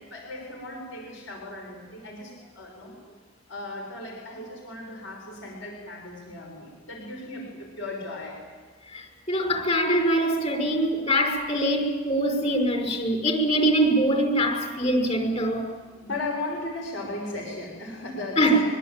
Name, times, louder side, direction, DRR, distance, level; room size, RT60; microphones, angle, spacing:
voice 1, 0.0-2.9 3.5-8.4 16.0-18.6, left 2 dB, 65° left, 1 dB, 6.3 m, -36 dB
voice 2, 8.9-15.7 18.4-18.6, right 1 dB, 35° left, 3 dB, 5.6 m, -23 dB
24.5 x 23.5 x 9.2 m, 1.4 s
head